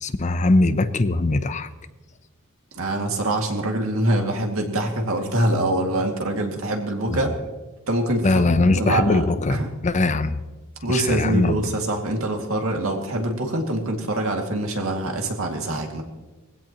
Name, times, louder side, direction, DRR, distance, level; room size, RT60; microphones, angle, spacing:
voice 1, 0.0-1.7 7.1-7.2 8.2-10.4 10.9-11.6, left 2 dB, 35° left, 12 dB, 0.6 m, -21 dB
voice 2, 2.7-7.3 7.9-8.4 8.7-9.2 9.5-9.7 10.8-16.0, right 1 dB, 75° right, 2 dB, 2.3 m, -24 dB
20.5 x 16.0 x 3.0 m, 1.2 s
head